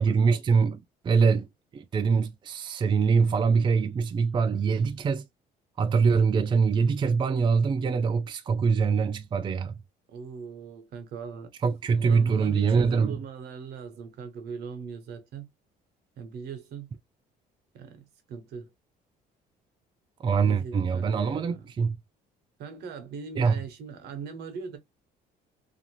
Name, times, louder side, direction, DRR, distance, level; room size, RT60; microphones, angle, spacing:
voice 1, 0.0-1.5 1.7-5.3 5.8-9.7 11.6-13.2 20.2-22.0 23.4-23.6, right 5 dB, 30° right, 0.4 m, -24 dB
voice 2, 10.1-11.5 12.1-15.5 16.2-16.9 17.7-18.7 20.4-21.7 22.6-24.8, right 6 dB, 75° right, 0.9 m, -40 dB
2.5 x 2.5 x 2.8 m
cardioid pair, 110°, 17 cm